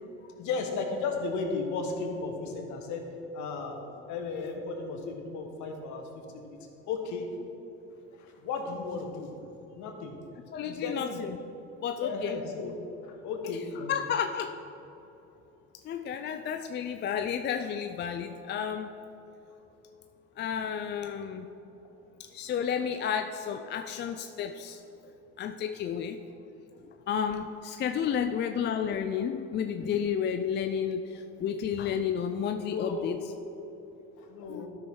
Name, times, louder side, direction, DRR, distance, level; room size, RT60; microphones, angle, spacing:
voice 1, 0.4-3.0 3.3-3.8 4.1-6.0 6.3-6.6 6.9-7.3 8.1-9.3 9.7-10.1 10.7-11.2 12.0-12.7 13.0-14.1 32.7-33.1 34.2-34.7, left 4 dB, 65° left, 3 dB, 1.6 m, -34 dB
voice 2, 10.5-11.4 11.8-12.4 13.4-14.5 15.8-18.9 20.4-21.5 22.2-24.8 25.4-26.2 27.1-33.2 34.5-34.7, left 8 dB, 35° left, 7 dB, 0.4 m, -32 dB
12.5 x 6.1 x 3.8 m, 3.0 s
supercardioid pair, 100°, 32 cm